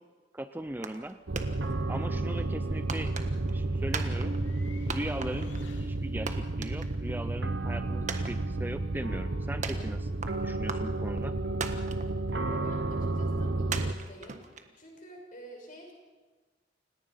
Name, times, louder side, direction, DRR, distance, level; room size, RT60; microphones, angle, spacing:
voice 1, 0.3-1.2 1.9-3.2 3.5-4.3 4.9-11.3, right 1 dB, 10° right, 10 dB, 0.6 m, -39 dB
sound 1, 0.7-6.3, left 1 dB, 85° left, 2.4 m, -51 dB
sound 2, 0.8-1.1 1.4-2.0 2.9-3.6 3.9-4.6 4.9-5.7 6.0-6.1 6.3-7.2 7.5-7.6 8.1-8.9 9.6-10.3 10.7-11.2 11.6-12.3 12.7-12.8 13.7-15.0, right 5 dB, 40° right, 1.4 m, -37 dB
sound 3, 1.3-13.9, right 2 dB, 70° right, 1.0 m, -31 dB
voice 2, 12.5-14.4 14.8-15.9, equal, 45° left, 1 dB, 6.3 m, -48 dB
29.5 x 17.5 x 5.6 m, 1.3 s
head